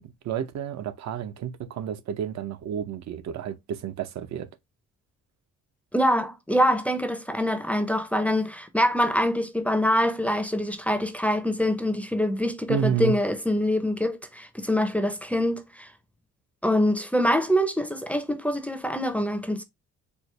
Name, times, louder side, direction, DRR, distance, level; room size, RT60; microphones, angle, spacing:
voice 1, 0.0-4.5 12.7-13.2, right 9 dB, 65° right, 0.6 m, -30 dB
voice 2, 5.9-15.9 16.6-19.6, equal, 5° left, 0.5 m, -25 dB
4.4 x 2.0 x 3.1 m
cardioid pair, 90°, 30 cm